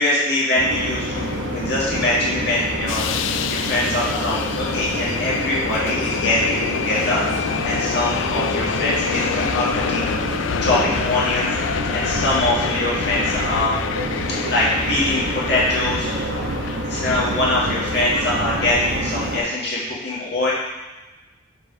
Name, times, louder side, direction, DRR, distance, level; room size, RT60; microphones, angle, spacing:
voice 1, 0.0-10.1 10.6-13.8 14.0-16.1 16.9-20.5, left 2 dB, 65° left, -7 dB, 1.9 m, -23 dB
sound 1, 0.6-19.4, right 1 dB, 80° right, 0.9 m, -28 dB
Subway metro underground, 1.1-19.0, left 7 dB, 80° left, 0.3 m, -28 dB
5.3 x 4.3 x 5.2 m, 1.1 s
head